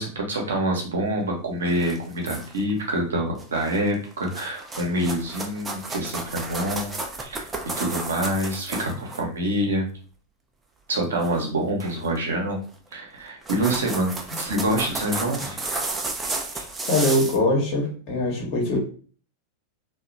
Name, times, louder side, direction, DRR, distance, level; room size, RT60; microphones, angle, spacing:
voice 1, 0.0-7.5 7.8-9.9 10.9-12.6 12.9-15.6 16.5-16.7, right 1 dB, 65° right, 1 dB, 0.8 m, -26 dB
sound 1, 1.7-2.7 3.4-3.8 4.1-9.2 11.2-11.4 11.8-12.2 12.9-13.0 13.3-17.4, right 2 dB, 15° right, 0.5 m, -32 dB
voice 2, 16.9-18.8, left 1 dB, 45° left, -1 dB, 1.0 m, -22 dB
2.8 x 2.2 x 2.5 m, 0.42 s
figure-of-eight pair, 90°, 0 cm